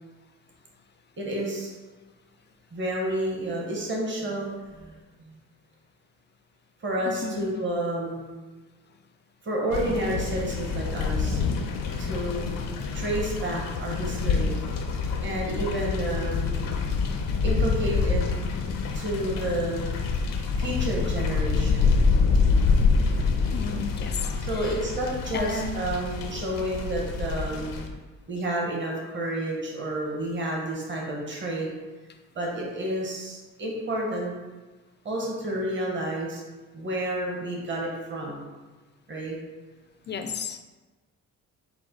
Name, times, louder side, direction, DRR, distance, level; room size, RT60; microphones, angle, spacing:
voice 1, 1.2-1.8 2.7-5.4 6.8-8.4 9.4-11.4 12.0-12.6 12.9-14.6 15.2-16.5 17.4-18.2 18.9-20.0 20.6-22.0 24.4-27.9 28.3-31.7 32.3-34.3 35.0-36.4 36.7-38.5 39.1-39.4, right 1 dB, 35° right, -2 dB, 1.1 m, -30 dB
voice 2, 7.0-7.5 23.5-24.7 25.3-25.7 40.1-40.6, left 5 dB, 35° left, 7 dB, 0.4 m, -33 dB
sound 1, 9.7-27.9, left 4 dB, 75° left, 0.6 m, -26 dB
4.6 x 2.2 x 3.8 m, 1.3 s
cardioid pair, 75°, 34 cm